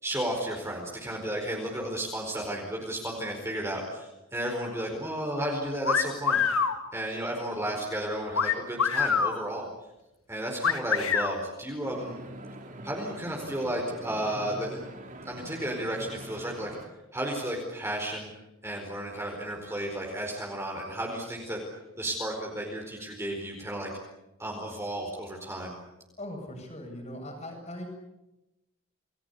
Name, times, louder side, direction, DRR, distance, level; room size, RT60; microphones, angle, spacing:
voice 1, 0.0-6.4 6.9-9.7 10.3-12.1 12.8-14.8 15.2-16.7 17.1-18.3 18.6-21.6 22.0-23.9 24.4-25.8, right 1 dB, 10° right, -1 dB, 4.7 m, -33 dB
sound 1, 5.8-6.8 8.3-9.4 10.6-11.3, left 6 dB, 80° left, 2.3 m, -25 dB
sound 2, 11.8-16.9, right 1 dB, 35° right, 3.2 m, -44 dB
voice 2, 26.2-27.9, left 1 dB, 30° left, 4 dB, 7.3 m, -40 dB
29.5 x 20.5 x 8.4 m, 0.98 s
head